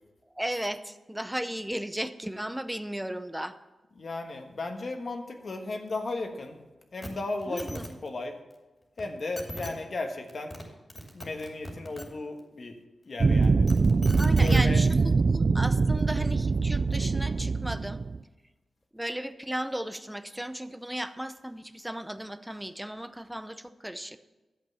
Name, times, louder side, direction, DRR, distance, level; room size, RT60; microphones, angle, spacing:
voice 1, 0.4-3.5 7.5-7.8 14.2-18.0 18.9-24.2, right 1 dB, 5° right, 11 dB, 0.6 m, -35 dB
voice 2, 4.0-6.6 6.9-8.4 9.0-10.5 11.1-12.8 13.0-13.7 14.3-14.8, left 2 dB, 55° left, 4 dB, 1.5 m, -35 dB
sound 1, 7.0-7.1 7.4-7.9 9.0-9.1 9.4-9.7 10.3-10.6 10.9-12.1 13.4-14.6 15.6-15.7, equal, 25° left, 2.6 m, -38 dB
sound 2, 13.2-18.2, right 4 dB, 50° right, 0.4 m, -23 dB
11.5 x 8.1 x 5.6 m, 1.1 s
wide cardioid pair, 100°, 0 cm